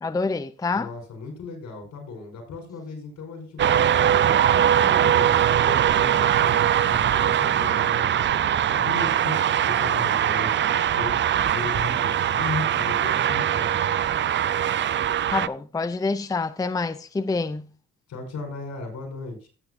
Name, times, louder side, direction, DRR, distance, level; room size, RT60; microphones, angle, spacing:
voice 1, 0.0-0.9 15.3-17.7, left 3 dB, 10° left, 0.5 m, -27 dB
voice 2, 0.7-10.6 10.9-13.8 18.1-19.5, left 3 dB, 75° left, 4.6 m, -36 dB
sound 1, 3.6-15.5, right 10 dB, 40° right, 0.4 m, -21 dB
16.0 x 6.9 x 2.6 m
cardioid pair, 90°, 30 cm